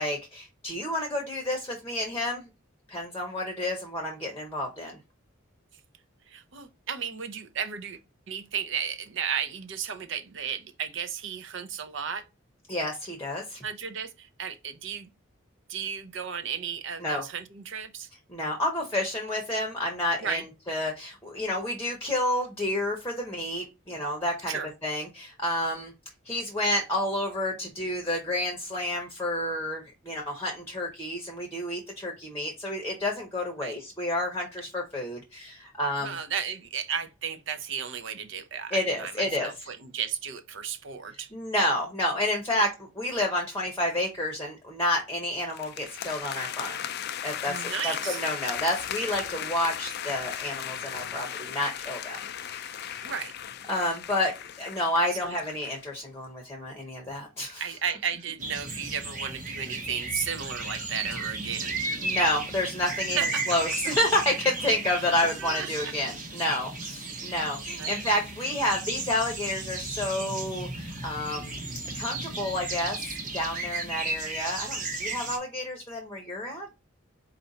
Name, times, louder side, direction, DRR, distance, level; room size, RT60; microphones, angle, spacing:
voice 1, 0.0-2.5 2.9-5.0 12.7-13.6 17.0-17.3 18.3-25.9 26.2-36.2 38.7-39.5 41.1-42.7 43.0-46.8 47.2-53.1 53.7-54.3 54.6-57.6 62.0-63.2 63.5-71.5 71.9-73.0 73.3-76.7, left 1 dB, 10° left, 0.8 m, -30 dB
voice 2, 6.3-8.0 8.3-12.2 13.6-15.1 15.7-18.1 20.2-20.4 24.5-24.7 33.6-33.7 36.0-41.3 42.5-42.6 47.5-48.2 53.0-53.3 55.2-55.4 57.6-61.8 63.1-63.4 65.0-65.1 65.4-65.9 67.3-67.9, right 7 dB, 60° right, 0.6 m, -34 dB
sound 1, 45.5-55.8, left 9 dB, 50° left, 0.4 m, -37 dB
sound 2, 58.4-75.4, right 3 dB, 40° right, 1.0 m, -34 dB
4.4 x 2.6 x 4.0 m
head